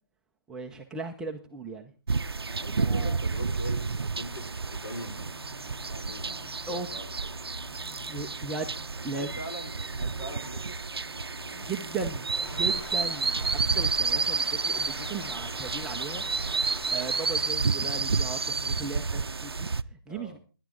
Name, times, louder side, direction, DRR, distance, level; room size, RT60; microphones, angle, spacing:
voice 1, 0.5-1.9 2.8-3.2 6.7-6.9 8.1-8.7 9.0-9.3 11.6-16.2 16.9-19.7 20.1-20.4, right 4 dB, 5° right, 1 dB, 0.7 m, -37 dB
sound 1, 2.1-19.8, right 4 dB, 85° right, 0.6 m, -30 dB
voice 2, 2.3-4.4 4.8-5.4 5.9-7.3 9.1-10.8 11.4-11.8 12.3-12.7 20.1-20.4, equal, 55° left, 6 dB, 4.7 m, -42 dB
sound 2, 4.7-18.7, left 4 dB, 70° left, 1.8 m, -49 dB
sound 3, 12.4-17.5, left 1 dB, 85° left, 7.3 m, -45 dB
17.5 x 10.5 x 3.8 m, 0.35 s
figure-of-eight pair, 150°, 13 cm